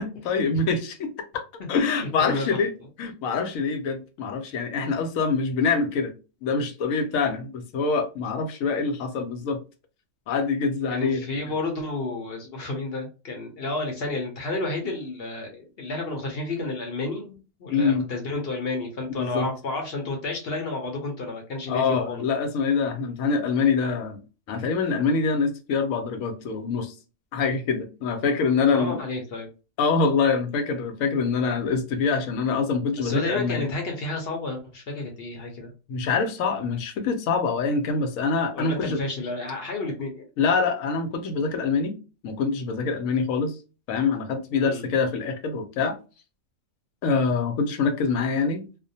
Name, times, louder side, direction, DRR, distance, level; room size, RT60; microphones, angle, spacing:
voice 1, 0.0-1.4 1.7-2.7 3.0-6.1 6.4-9.6 10.3-11.2 17.7-18.1 19.2-19.5 21.7-24.2 24.5-26.9 27.3-29.0 29.8-33.7 35.9-39.0 40.4-42.0 42.2-43.6 43.9-46.0 47.0-48.6, left 5 dB, 85° left, 1.0 m, -25 dB
voice 2, 2.2-2.6 10.9-17.3 17.6-22.3 28.7-29.5 33.0-35.7 38.5-40.3 44.5-44.8, left 2 dB, 55° left, 0.8 m, -31 dB
2.4 x 2.1 x 2.6 m
omnidirectional pair, 1.4 m